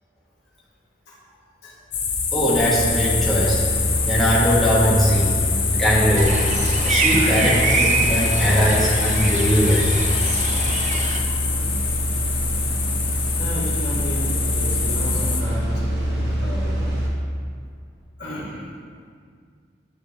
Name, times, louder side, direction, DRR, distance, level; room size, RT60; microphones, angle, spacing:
sound 1, 1.9-15.4, left 6 dB, 30° left, 0.5 m, -25 dB
voice 1, 2.3-3.6 4.1-5.3 5.7-6.3 6.8-9.9, equal, ahead, -10 dB, 1.2 m, -20 dB
sound 2, 2.5-17.1, right 1 dB, 85° right, 1.0 m, -25 dB
sound 3, 6.2-11.2, right 4 dB, 40° right, 0.5 m, -25 dB
voice 2, 13.3-17.1 18.2-18.7, equal, 70° left, -6 dB, 1.5 m, -33 dB
9.6 x 3.5 x 3.1 m, 2.1 s
head